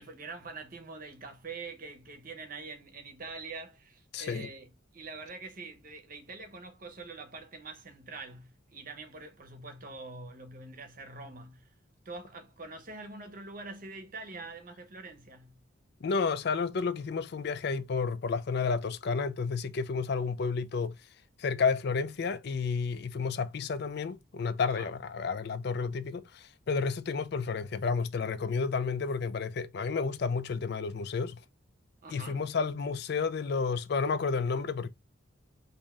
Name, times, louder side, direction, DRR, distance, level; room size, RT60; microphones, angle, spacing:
voice 1, 0.0-11.7 12.0-15.6 24.6-24.9 32.0-32.5, right 3 dB, 45° right, 0.8 m, -45 dB
voice 2, 4.1-4.5 16.0-21.0 21.4-31.4 32.1-34.9, left 5 dB, 55° left, 0.4 m, -31 dB
3.2 x 2.7 x 3.4 m
head